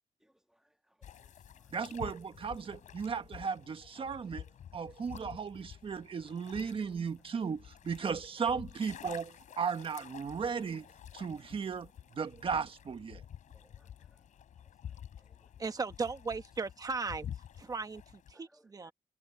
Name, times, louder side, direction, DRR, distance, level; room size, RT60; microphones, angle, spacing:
voice 1, 0.2-1.7 13.5-14.2 14.6-14.7 15.2-15.5 18.3-18.9, equal, 5° right, 2.4 m, -70 dB
Waves lapping shore, 1.0-18.3, left 9 dB, 85° left, 4.7 m, -50 dB
voice 2, 1.7-4.4 4.7-10.9 11.1-13.2, right 6 dB, 45° right, 1.6 m, -36 dB
voice 3, 15.6-17.3 17.6-18.9, right 4 dB, 30° right, 1.2 m, -37 dB
wide cardioid pair, 135°, 13 cm